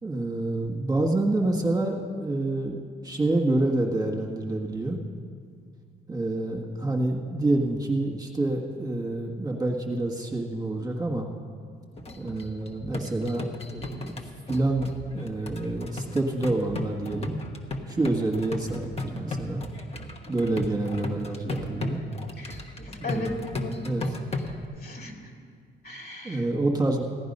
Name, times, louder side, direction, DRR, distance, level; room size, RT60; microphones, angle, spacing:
voice 1, 0.0-5.0 6.1-11.3 12.2-17.4 17.9-19.6 20.3-22.0 23.0-23.4 23.8-24.2 26.2-27.0, right 2 dB, 20° right, 0 dB, 1.6 m, -27 dB
sound 1, 12.0-24.7, left 1 dB, 30° left, 1.4 m, -36 dB
voice 2, 22.4-23.3 23.6-23.8 24.8-25.1 25.8-26.4, left 3 dB, 50° left, 1 dB, 2.7 m, -37 dB
15.5 x 10.0 x 5.5 m, 2.1 s
cardioid pair, 90°, 20 cm